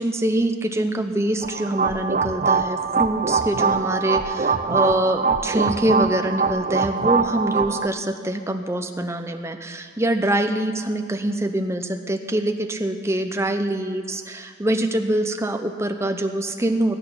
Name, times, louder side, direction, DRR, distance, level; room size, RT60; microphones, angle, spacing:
voice 1, 0.0-17.0, right 1 dB, 15° right, 6 dB, 0.8 m, -24 dB
sound 1, 1.4-7.9, right 5 dB, 40° right, 0.5 m, -23 dB
19.0 x 6.5 x 9.9 m, 2.2 s
head